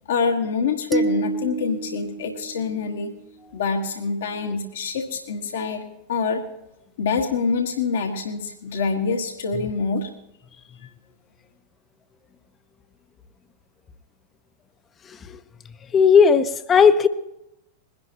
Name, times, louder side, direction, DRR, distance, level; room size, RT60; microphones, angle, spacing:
voice 1, 0.1-3.1 3.5-5.8 6.1-6.4 7.0-10.1, left 5 dB, 60° left, 1.3 m, -25 dB
sound 1, 0.9-3.3, right 3 dB, 10° right, 1.0 m, -29 dB
voice 2, 15.0-15.4 15.9-17.1, left 6 dB, 20° left, 0.8 m, -16 dB
22.0 x 11.0 x 2.9 m
figure-of-eight pair, 90°, 0 cm